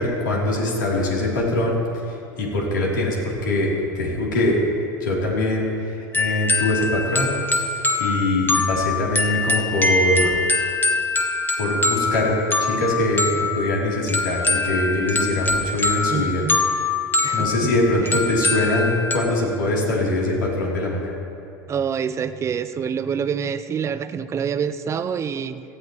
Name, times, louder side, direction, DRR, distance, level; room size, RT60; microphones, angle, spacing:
voice 1, 0.0-1.7 2.4-4.6 5.0-7.3 8.0-10.4 11.6-12.3 12.6-16.4 17.3-21.1, left 1 dB, 85° left, -4 dB, 3.2 m, -23 dB
sound 1, 6.1-19.2, left 3 dB, 20° left, 1.3 m, -23 dB
voice 2, 16.1-16.6 17.2-17.7 18.0-18.2 21.7-25.6, right 7 dB, 30° right, 11 dB, 0.6 m, -26 dB
17.5 x 13.0 x 3.1 m, 2.6 s
hypercardioid pair, 90°, 10 cm